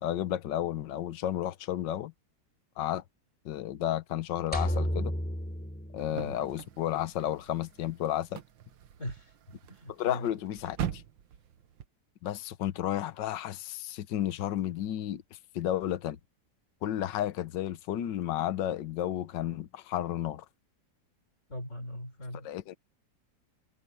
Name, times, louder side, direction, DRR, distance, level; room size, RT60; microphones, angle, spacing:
voice 1, 0.0-2.1 2.8-3.0 3.4-5.1 5.9-8.4 9.9-11.0 12.2-16.2 16.8-20.4 22.4-22.7, left 12 dB, 70° left, 1.6 m, -32 dB
sound 1, 4.5-6.8, equal, 5° left, 3.7 m, -32 dB
sound 2, 6.0-11.9, right 10 dB, 80° right, 1.8 m, -42 dB
voice 2, 9.0-10.3 21.5-22.5, left 1 dB, 40° left, 5.2 m, -40 dB
omnidirectional pair, 2.0 m